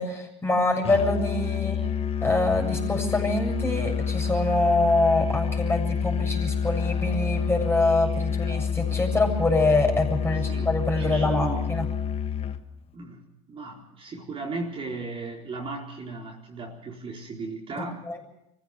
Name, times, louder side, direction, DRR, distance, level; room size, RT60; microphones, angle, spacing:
voice 1, 0.0-1.8 2.2-11.8 18.1-18.2, left 2 dB, 15° left, 3 dB, 7.3 m, -25 dB
Musical instrument, 0.8-12.7, left 7 dB, 35° left, 1.4 m, -28 dB
voice 2, 10.5-11.7 12.9-13.2 13.5-18.0, right 3 dB, 30° right, -1 dB, 4.4 m, -36 dB
25.0 x 15.5 x 6.7 m, 0.86 s
hypercardioid pair, 90°, 17 cm